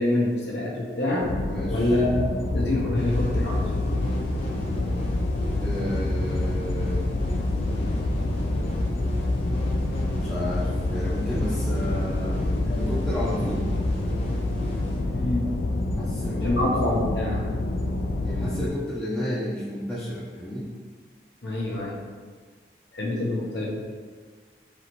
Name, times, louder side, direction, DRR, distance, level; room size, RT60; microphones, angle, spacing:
voice 1, 0.0-1.3 1.7-2.2 2.5-3.9 4.2-4.3 15.1-15.5 16.4-17.5 21.4-22.0 22.9-23.8, left 1 dB, 75° left, -3 dB, 1.0 m, -26 dB
sound 1, 1.2-18.7, left 2 dB, 55° left, 0.3 m, -28 dB
voice 2, 1.4-1.8 5.6-7.0 10.1-13.7 16.0-16.9 18.2-20.7, equal, 10° left, -9 dB, 0.6 m, -32 dB
sound 2, 2.9-16.3, equal, 35° left, 0.8 m, -31 dB
4.9 x 3.0 x 3.0 m, 1.5 s
head